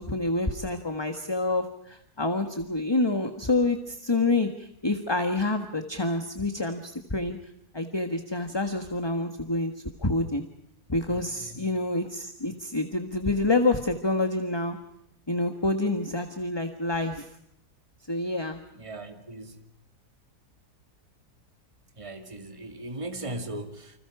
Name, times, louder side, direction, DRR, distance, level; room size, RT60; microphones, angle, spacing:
voice 1, 0.0-7.4 7.7-9.7 10.0-10.4 10.9-14.8 15.3-17.3 18.1-18.6, left 2 dB, 15° left, 7 dB, 1.5 m, -27 dB
voice 2, 11.1-11.7 18.7-19.6 22.0-24.0, right 1 dB, 20° right, 6 dB, 2.3 m, -38 dB
29.5 x 26.0 x 4.9 m, 0.74 s
omnidirectional pair, 1.7 m